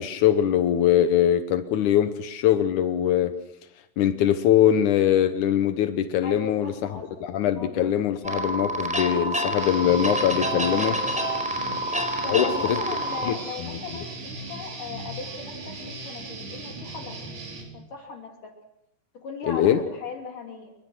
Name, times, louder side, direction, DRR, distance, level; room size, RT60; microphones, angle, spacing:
voice 1, 0.0-3.3 4.0-11.0 12.3-12.8 13.3-13.4 19.5-19.8, left 10 dB, 80° left, 9 dB, 1.7 m, -22 dB
voice 2, 6.2-7.2 7.6-7.9 11.6-17.4 17.7-18.5 19.1-20.7, left 4 dB, 50° left, 2 dB, 3.9 m, -38 dB
sound 1, 8.2-13.3, right 1 dB, ahead, 4.2 m, -28 dB
Guitar, 9.6-17.6, right 2 dB, 75° right, 7.2 m, -38 dB
29.5 x 22.0 x 6.3 m, 0.82 s
omnidirectional pair, 5.2 m